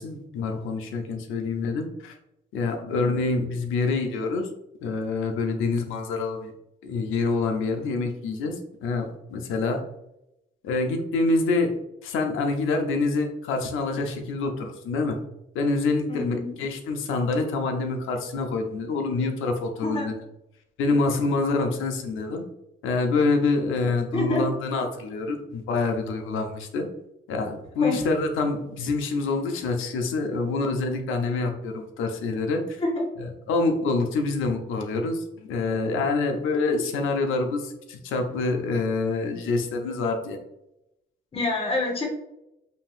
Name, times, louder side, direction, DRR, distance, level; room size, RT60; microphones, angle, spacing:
voice 1, 0.0-2.2 2.5-4.5 4.8-6.5 6.8-9.8 10.6-11.7 12.0-15.2 15.5-20.1 20.8-22.4 22.8-26.9 27.3-32.8 33.2-40.4, left 3 dB, 85° left, 4 dB, 0.7 m, -26 dB
voice 2, 2.8-3.2 16.1-16.5 19.8-20.1 23.1-23.3 24.1-24.4 27.8-28.0 32.8-33.1 41.3-42.1, left 2 dB, 30° left, 1 dB, 0.9 m, -27 dB
5.2 x 2.7 x 2.4 m, 0.85 s
cardioid pair, 90°, 20 cm